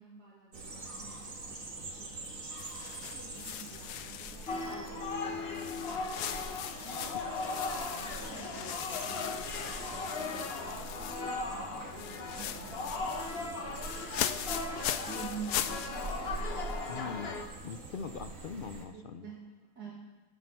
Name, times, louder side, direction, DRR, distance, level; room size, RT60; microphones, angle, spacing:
voice 1, 0.0-2.3 3.0-5.6 6.8-7.2 7.6-11.1 11.5-13.3 15.1-16.2 18.9-19.9, right 6 dB, 85° right, -7 dB, 3.3 m, -49 dB
sound 1, 0.5-18.8, right 2 dB, 60° right, 2.0 m, -45 dB
sound 2, 2.6-5.1 5.5-11.5 11.8-16.9, left 11 dB, 85° left, 1.2 m, -40 dB
sound 3, 4.5-17.4, left 3 dB, 40° left, 1.4 m, -38 dB
voice 2, 16.9-19.3, left 5 dB, 70° left, 9 dB, 0.5 m, -42 dB
18.5 x 7.6 x 6.0 m, 1.1 s
omnidirectional pair, 1.6 m